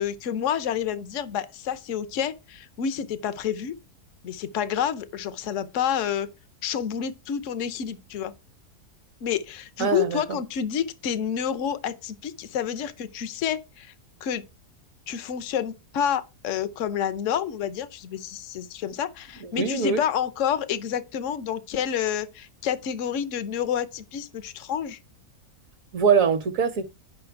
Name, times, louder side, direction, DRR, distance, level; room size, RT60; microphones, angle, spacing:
voice 1, 0.0-3.7 4.2-6.3 6.6-8.3 9.2-13.9 14.2-14.4 15.1-25.0, left 9 dB, 55° left, 1.1 m, -29 dB
voice 2, 9.8-10.4 19.5-20.0 25.9-26.8, right 6 dB, 60° right, 1.3 m, -22 dB
9.6 x 5.5 x 4.5 m
omnidirectional pair, 1.7 m